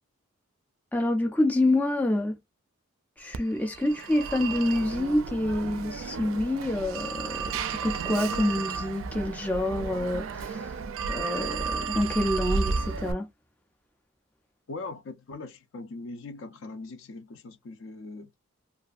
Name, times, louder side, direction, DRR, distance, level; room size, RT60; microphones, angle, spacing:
voice 1, 0.9-2.4 3.2-10.8 11.1-13.3, left 1 dB, 5° left, 0.3 m, -27 dB
Telephone, 3.3-13.1, right 5 dB, 65° right, 0.4 m, -33 dB
voice 2, 14.7-18.3, left 3 dB, 65° left, 0.5 m, -40 dB
2.6 x 2.4 x 2.3 m
head